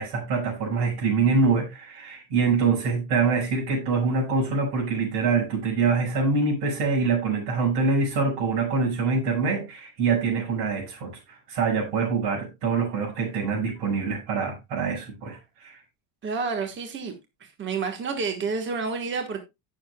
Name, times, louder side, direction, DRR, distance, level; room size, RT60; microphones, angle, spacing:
voice 1, 0.0-15.8, right 4 dB, 60° right, 6.0 m, -25 dB
voice 2, 16.2-17.1 17.4-19.4, right 4 dB, 25° right, 1.4 m, -29 dB
17.5 x 6.8 x 2.3 m
cardioid pair, 145°, 47 cm